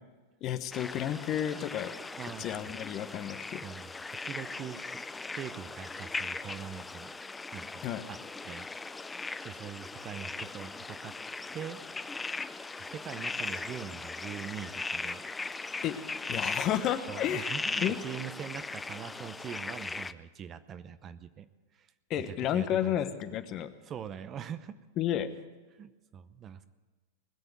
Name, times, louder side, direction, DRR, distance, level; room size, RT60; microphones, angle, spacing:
voice 1, 0.4-1.9 2.4-3.6 7.8-8.0 15.8-16.0 16.3-17.5 17.8-18.0 22.1-23.7 25.0-25.3, left 10 dB, 40° left, 11 dB, 1.0 m, -31 dB
sound 1, 0.7-20.1, left 3 dB, 10° left, 0.5 m, -39 dB
voice 2, 2.2-2.6 3.6-5.0 5.3-7.1 7.5-8.2 8.4-8.7 9.4-11.2 11.5-11.8 12.8-15.2 17.1-21.5 21.7-21.9 22.3-23.0 23.8-24.8 25.7-26.7, right 9 dB, 30° right, 13 dB, 0.7 m, -43 dB
20.0 x 7.1 x 9.4 m, 1.3 s
hypercardioid pair, 120°, 0 cm